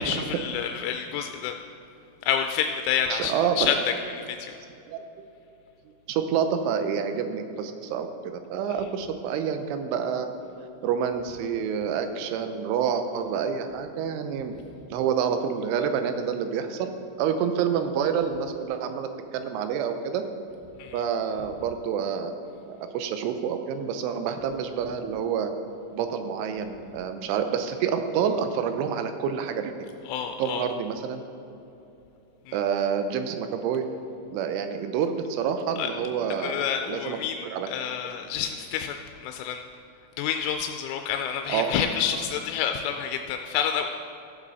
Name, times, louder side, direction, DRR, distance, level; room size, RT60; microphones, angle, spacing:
voice 1, 0.0-1.5 2.2-3.8 4.1-4.5 20.8-21.0 30.1-30.7 32.5-32.6 35.8-35.9 36.4-39.6 40.2-43.9, left 8 dB, 85° left, 5 dB, 3.0 m, -28 dB
voice 2, 3.1-3.7 4.9-5.0 6.1-10.3 10.8-14.5 14.9-16.9 17.2-20.3 20.9-22.3 22.6-25.5 25.9-29.7 30.4-31.2 32.5-33.9 34.3-37.7 41.5-41.9, right 7 dB, 85° right, 8 dB, 3.2 m, -28 dB
14.5 x 7.4 x 4.0 m, 2.8 s
omnidirectional pair, 5.5 m